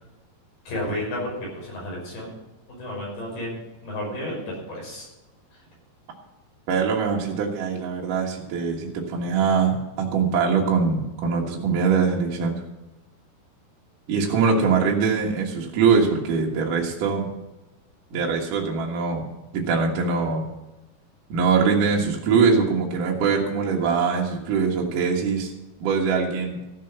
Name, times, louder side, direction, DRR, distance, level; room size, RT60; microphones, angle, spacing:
voice 1, 0.7-2.3 2.7-3.6 3.8-4.4 4.7-5.1 5.5-5.6, left 1 dB, 60° left, -3 dB, 7.7 m, -32 dB
voice 2, 6.7-12.6 14.1-17.3 18.1-19.2 19.5-20.4 21.3-25.5 25.8-26.6, right 5 dB, 60° right, -2 dB, 2.6 m, -22 dB
15.0 x 7.5 x 6.8 m, 1.0 s
omnidirectional pair, 5.1 m